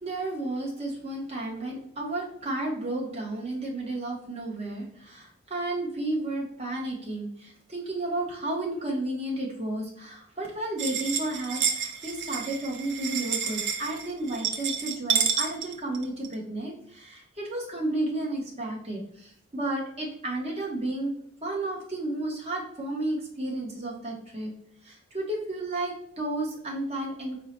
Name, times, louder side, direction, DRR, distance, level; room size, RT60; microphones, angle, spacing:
voice 1, 0.0-21.1 21.4-24.5 24.8-27.4, right 2 dB, 30° right, -2 dB, 0.8 m, -32 dB
sound 1, 10.8-16.3, right 7 dB, 55° right, 0.5 m, -29 dB
4.4 x 2.0 x 4.2 m, 0.69 s
head